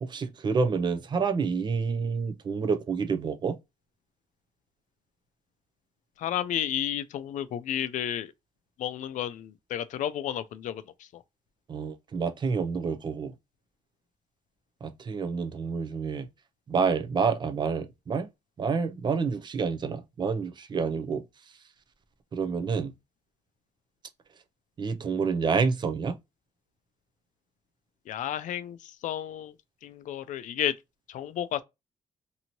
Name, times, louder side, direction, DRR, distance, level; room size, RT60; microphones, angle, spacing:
voice 1, 0.0-3.6 11.7-13.3 14.8-16.3 16.7-18.3 18.6-21.2 22.3-22.9 24.8-26.2, right 5 dB, 35° right, 0.4 m, -28 dB
voice 2, 6.2-8.3 8.8-10.8 11.1-11.2 28.1-29.5 29.8-30.7 31.1-31.6, left 11 dB, 85° left, 0.4 m, -32 dB
2.9 x 2.7 x 2.5 m
wide cardioid pair, 150°, 13 cm